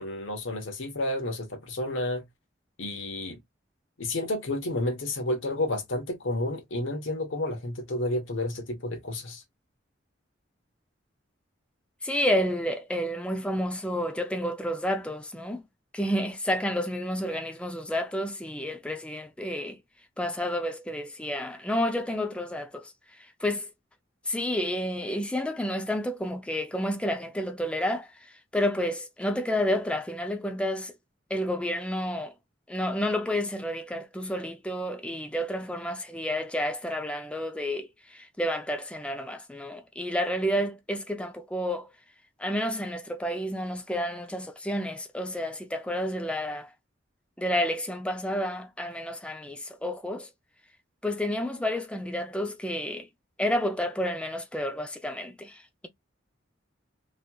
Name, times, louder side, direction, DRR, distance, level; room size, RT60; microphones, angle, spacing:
voice 1, 0.0-2.2 2.8-3.4 4.0-9.4, left 1 dB, 85° left, 1.1 m, -31 dB
voice 2, 12.0-15.6 15.9-19.8 20.2-22.9 23.4-23.7 24.3-30.9 31.3-32.3 32.7-41.9 42.4-46.7 47.4-50.3 51.0-53.1 53.4-55.9, equal, 5° left, 0.4 m, -30 dB
3.1 x 2.9 x 2.2 m
head